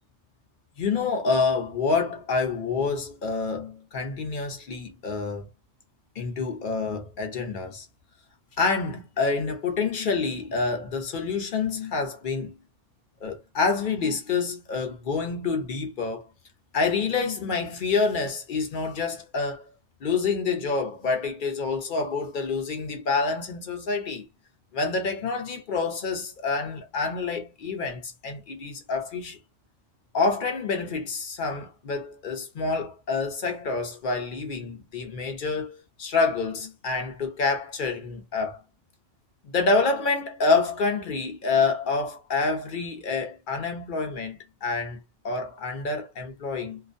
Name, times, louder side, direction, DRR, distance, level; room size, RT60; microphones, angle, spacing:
voice 1, 0.8-5.5 6.2-7.9 8.6-12.6 13.2-16.3 16.7-19.7 20.0-24.2 24.7-29.4 30.1-38.6 39.4-45.0 45.2-46.8, left 4 dB, 50° left, 0.7 m, -27 dB
2.4 x 2.1 x 2.5 m
omnidirectional pair, 1.4 m